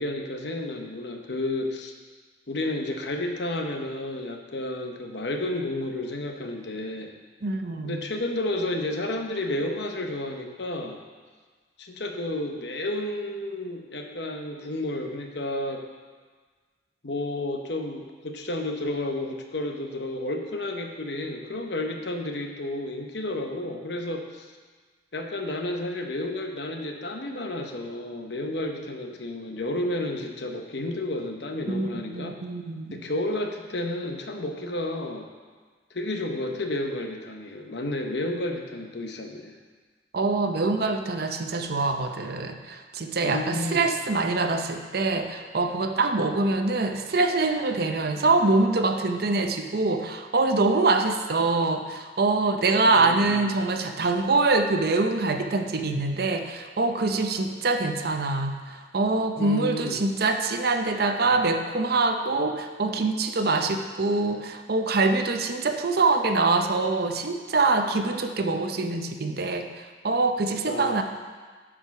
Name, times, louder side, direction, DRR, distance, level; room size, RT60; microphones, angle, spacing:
voice 1, 0.0-1.9 2.5-7.1 7.8-11.0 11.8-15.8 17.0-24.5 25.1-32.4 32.9-35.3 35.9-39.5 43.2-43.9 52.9-53.5 59.4-60.0 70.7-71.0, left 1 dB, 65° left, 3 dB, 0.9 m, -31 dB
voice 2, 7.4-8.0 31.7-33.0 40.1-71.0, right 3 dB, 55° right, 6 dB, 0.7 m, -24 dB
10.0 x 4.9 x 5.8 m, 1.5 s
head